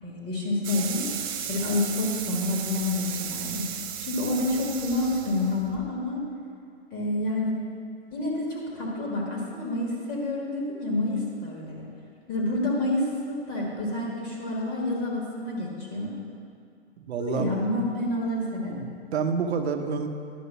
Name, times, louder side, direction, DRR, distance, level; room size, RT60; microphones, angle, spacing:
voice 1, 0.0-1.1 1.5-6.2 6.9-7.6 8.1-11.9 12.3-16.1 17.2-18.9, left 2 dB, 30° left, -2 dB, 1.6 m, -28 dB
sound 1, 0.6-5.8, right 9 dB, 20° right, 0.4 m, -35 dB
voice 2, 17.0-17.6 18.7-20.1, right 6 dB, 70° right, 6 dB, 0.9 m, -29 dB
10.5 x 5.2 x 5.5 m, 2.3 s
hypercardioid pair, 135°, 33 cm